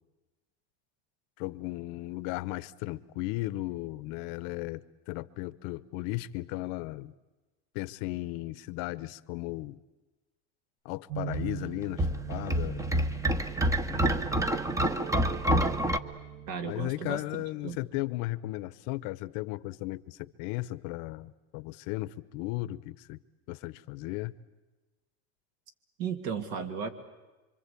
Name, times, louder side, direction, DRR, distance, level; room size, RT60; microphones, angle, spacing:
voice 1, 1.4-7.1 7.7-9.8 10.8-12.9 13.9-14.0 16.6-23.2 23.5-24.3, left 19 dB, 55° left, 17 dB, 0.9 m, -36 dB
sound 1, 11.1-16.5, right 12 dB, 35° right, 1.3 m, -41 dB
sound 2, 11.3-16.0, right 1 dB, 10° right, 0.8 m, -28 dB
voice 2, 16.5-17.8 26.0-26.9, right 6 dB, 65° right, 8 dB, 2.8 m, -35 dB
26.0 x 25.0 x 8.4 m, 1.1 s
supercardioid pair, 130°, 38 cm